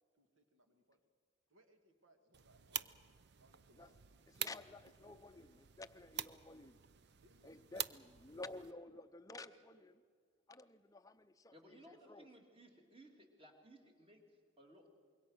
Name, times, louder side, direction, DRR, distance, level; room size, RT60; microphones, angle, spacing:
voice 1, 0.1-1.0 1.5-3.0 3.4-4.1 4.5-4.6 5.1-5.2 7.2-7.7 9.3-9.8, right 1 dB, 70° right, 6 dB, 2.0 m, -70 dB
sound 1, 2.3-8.7, right 11 dB, 55° right, 0.6 m, -48 dB
voice 2, 4.3-6.8 7.4-9.9 10.5-12.3, left 2 dB, 15° left, 9 dB, 0.6 m, -53 dB
voice 3, 11.5-14.9, right 1 dB, 25° right, 2 dB, 2.6 m, -61 dB
25.5 x 22.5 x 6.4 m, 2.1 s
head